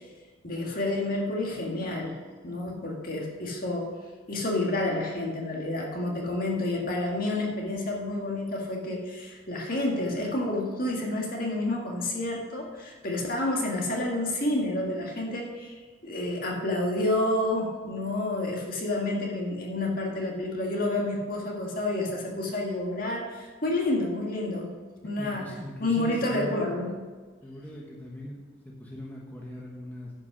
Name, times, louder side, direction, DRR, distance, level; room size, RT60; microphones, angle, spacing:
voice 1, 0.4-2.2 2.4-3.9 4.3-24.7 25.0-25.5 25.8-26.9, left 2 dB, 45° left, -1 dB, 1.9 m, -29 dB
voice 2, 25.2-26.7 27.4-30.1, equal, 10° left, -4 dB, 1.2 m, -40 dB
10.5 x 5.5 x 6.1 m, 1.4 s
head